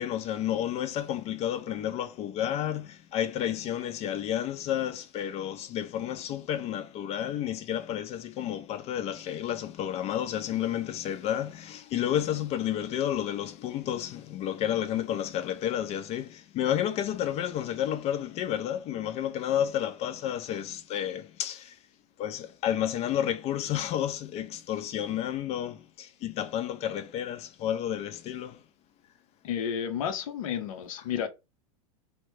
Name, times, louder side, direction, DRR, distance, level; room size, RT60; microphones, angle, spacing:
voice 1, 0.0-21.8 22.2-28.6, left 10 dB, 35° left, 0.4 m, -31 dB
voice 2, 29.4-31.3, left 8 dB, 70° left, 0.7 m, -31 dB
2.8 x 2.1 x 3.1 m
hypercardioid pair, 110°, 18 cm